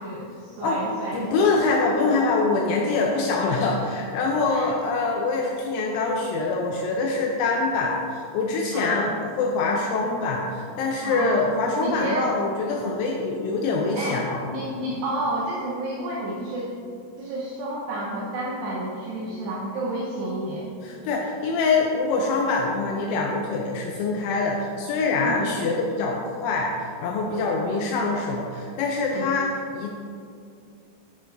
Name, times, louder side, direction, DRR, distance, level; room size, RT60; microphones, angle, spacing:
voice 1, 0.0-1.4 4.4-4.7 8.7-9.2 11.0-11.4 11.8-12.3 13.9-16.7 17.2-20.7 25.2-25.5 27.3-27.5 29.1-29.3, right 1 dB, 80° right, -5 dB, 2.4 m, -30 dB
voice 2, 1.1-14.4 20.8-29.9, left 3 dB, 85° left, 0 dB, 2.8 m, -24 dB
9.7 x 8.5 x 2.6 m, 2.4 s
omnidirectional pair, 6.0 m